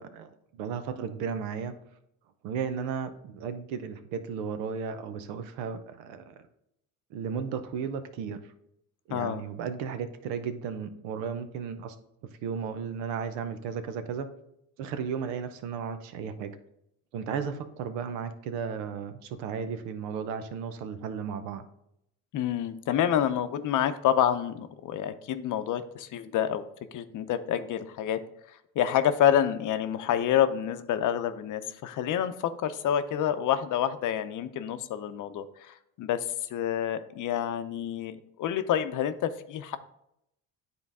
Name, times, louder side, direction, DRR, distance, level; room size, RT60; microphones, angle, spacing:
voice 1, 0.0-1.7 2.4-6.4 7.1-8.4 9.1-11.9 12.4-14.3 14.8-16.5 17.1-21.6, right 6 dB, 90° right, 9 dB, 0.8 m, -34 dB
voice 2, 9.1-9.4 22.3-26.6 26.9-28.2 28.8-39.8, left 10 dB, 55° left, 11 dB, 0.7 m, -28 dB
9.7 x 3.8 x 3.5 m, 0.79 s
supercardioid pair, 85°, 38 cm